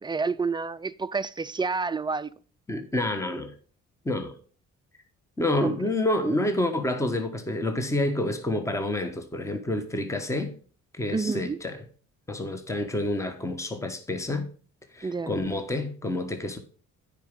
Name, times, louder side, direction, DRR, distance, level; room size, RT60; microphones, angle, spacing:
voice 1, 0.0-2.3 5.6-5.7 11.1-11.6 15.0-15.4, right 4 dB, 15° right, 0.4 m, -29 dB
voice 2, 2.7-3.5 4.0-4.3 5.4-10.5 10.9-11.8 12.3-14.5 14.9-16.6, left 1 dB, 10° left, 1.2 m, -28 dB
9.3 x 5.0 x 5.4 m
cardioid pair, 90°, 30 cm